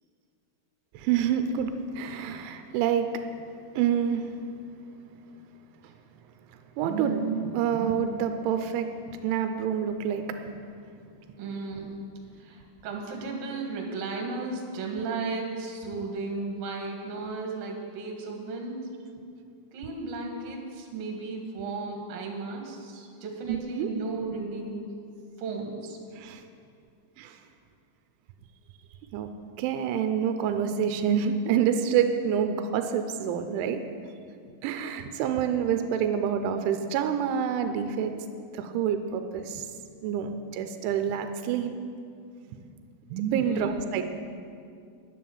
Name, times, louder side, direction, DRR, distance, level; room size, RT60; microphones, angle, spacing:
voice 1, 0.9-3.1 3.8-4.2 6.8-8.9 9.2-10.3 23.8-23.9 26.2-26.4 27.2-27.4 29.1-29.3 29.6-33.8 34.6-38.1 38.5-39.6 40.0-41.7 43.1-44.0, right 8 dB, 90° right, 7 dB, 3.0 m, -27 dB
voice 2, 11.4-11.9 12.4-18.8 19.7-24.9 25.4-26.0 43.4-43.8, right 3 dB, 60° right, 1 dB, 2.9 m, -35 dB
10.5 x 9.3 x 7.1 m, 2.4 s
omnidirectional pair, 5.4 m